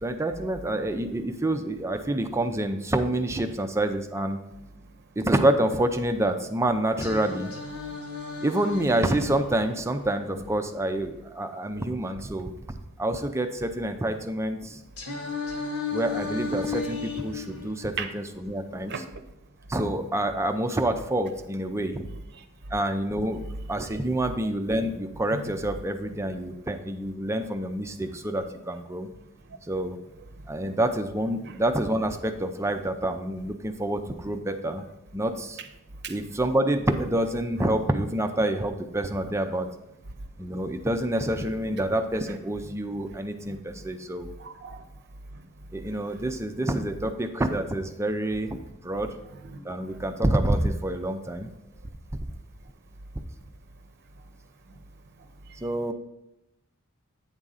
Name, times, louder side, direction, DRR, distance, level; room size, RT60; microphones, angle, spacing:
voice 1, 0.0-4.4 5.2-7.5 8.4-12.5 13.0-14.8 15.9-19.0 19.7-22.1 22.7-23.4 23.7-29.1 29.7-30.0 30.5-34.8 35.1-35.6 36.1-39.7 40.4-44.3 45.7-48.6 48.8-49.2 49.6-51.5 55.6-55.9, right 1 dB, 10° right, 7 dB, 0.4 m, -27 dB
Singing, 7.0-11.0 15.0-19.0, left 4 dB, 65° left, 1.4 m, -35 dB
voice 2, 44.4-44.8, right 7 dB, 50° right, 8 dB, 0.7 m, -34 dB
8.9 x 3.7 x 5.5 m, 0.87 s
head